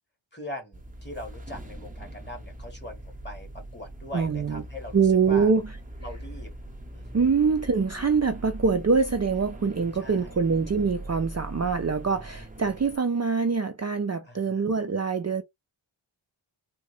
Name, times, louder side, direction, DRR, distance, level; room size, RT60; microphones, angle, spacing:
voice 1, 0.3-5.5 6.0-6.5 6.9-7.3 10.0-10.4 14.2-14.7, equal, 20° left, 1.7 m, -41 dB
sound 1, 0.7-13.0, right 1 dB, 15° right, 0.8 m, -41 dB
voice 2, 4.1-4.6 4.9-5.6 7.1-15.4, right 5 dB, 35° right, 0.5 m, -24 dB
3.7 x 2.1 x 3.1 m
wide cardioid pair, 55°, 50 cm